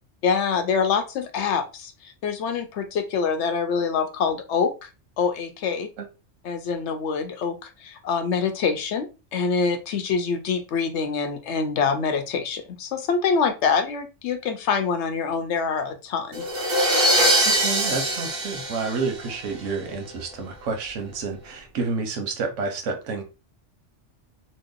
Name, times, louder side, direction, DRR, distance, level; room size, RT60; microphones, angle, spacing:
voice 1, 0.2-4.9 5.2-5.9 6.4-16.4, left 5 dB, 70° left, 7 dB, 0.9 m, -25 dB
sound 1, 16.3-19.6, right 1 dB, 40° right, 1.0 m, -22 dB
voice 2, 17.4-23.2, right 4 dB, 80° right, 5 dB, 1.1 m, -29 dB
3.0 x 2.2 x 3.6 m, 0.30 s
omnidirectional pair, 1.3 m